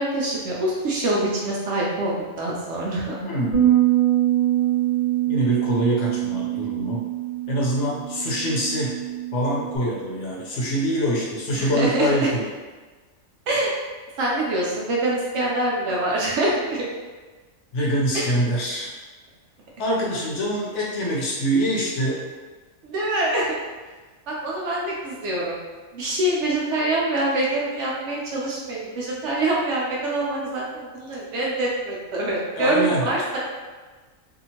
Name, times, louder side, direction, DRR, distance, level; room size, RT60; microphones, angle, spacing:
voice 1, 0.0-3.2 11.5-12.3 13.5-13.7 14.2-16.8 18.1-18.3 22.8-23.6 24.3-25.6 25.9-33.4, right 1 dB, 65° right, -4 dB, 0.8 m, -25 dB
voice 2, 3.2-3.8 5.3-7.1 7.5-9.0 9.3-12.5 17.7-18.9 19.8-22.2 32.6-33.1, equal, 65° left, -3 dB, 0.8 m, -24 dB
Bass guitar, 3.5-9.8, right 13 dB, 5° left, 0.7 m, -23 dB
2.7 x 2.4 x 2.8 m, 1.3 s
omnidirectional pair, 1.4 m